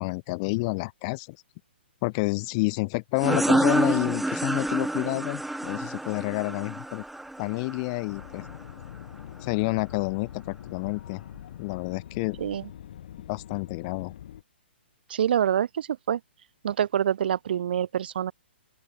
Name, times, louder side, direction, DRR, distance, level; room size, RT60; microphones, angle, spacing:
voice 1, 0.0-1.4 2.0-7.0 7.4-8.4 9.4-11.2 11.6-12.4 13.3-14.1, left 28 dB, 35° left, 2.4 m, -29 dB
sound 1, 3.2-8.5, right 1 dB, ahead, 0.5 m, -28 dB
sound 2, 8.1-14.4, left 10 dB, 55° left, 4.2 m, -44 dB
voice 2, 12.4-12.7 15.1-16.2 16.6-18.3, right 9 dB, 60° right, 2.5 m, -26 dB
open air
hypercardioid pair, 135°, 6 cm